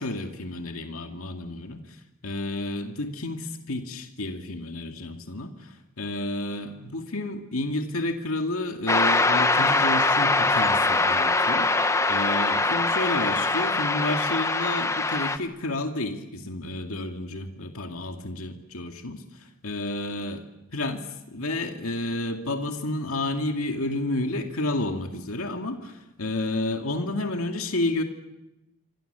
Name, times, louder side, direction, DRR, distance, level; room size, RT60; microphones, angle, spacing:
voice 1, 0.0-1.8 2.2-11.7 12.1-19.2 19.6-20.4 20.7-28.0, left 2 dB, 85° left, 4 dB, 2.3 m, -30 dB
sound 1, 8.9-15.4, left 3 dB, 15° left, 1.0 m, -23 dB
28.5 x 25.5 x 6.9 m, 0.95 s
head